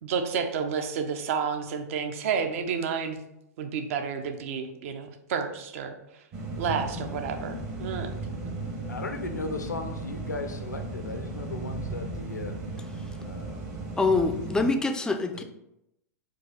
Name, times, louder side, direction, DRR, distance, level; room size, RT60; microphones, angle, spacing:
voice 1, 0.0-3.2 3.6-6.0 6.6-8.2, right 6 dB, 55° right, 6 dB, 0.6 m, -30 dB
sound 1, 6.3-14.7, right 2 dB, 40° right, 1.0 m, -36 dB
voice 2, 8.9-12.6 13.2-13.7 15.3-15.4, left 3 dB, 85° left, 6 dB, 0.6 m, -36 dB
voice 3, 14.0-15.4, left 3 dB, 10° left, 7 dB, 0.4 m, -25 dB
4.8 x 2.3 x 4.1 m, 0.84 s
figure-of-eight pair, 105°, 9 cm